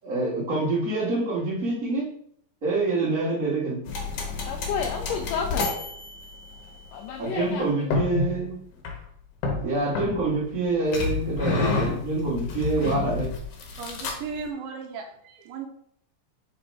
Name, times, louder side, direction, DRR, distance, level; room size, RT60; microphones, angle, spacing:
voice 1, 0.0-2.1 2.6-3.8 7.2-8.6 9.6-13.3, right 3 dB, 40° right, -5 dB, 1.3 m, -26 dB
sound 1, 3.9-6.8 7.9-8.4 8.8-9.0 9.4-10.5 10.9-14.4, left 3 dB, 65° left, 2.3 m, -29 dB
voice 2, 4.5-5.7 6.9-7.9, left 6 dB, 85° left, 3 dB, 1.8 m, -31 dB
voice 3, 13.8-15.7, right 5 dB, 75° right, 3 dB, 2.2 m, -36 dB
5.1 x 4.2 x 4.6 m, 0.67 s
omnidirectional pair, 4.2 m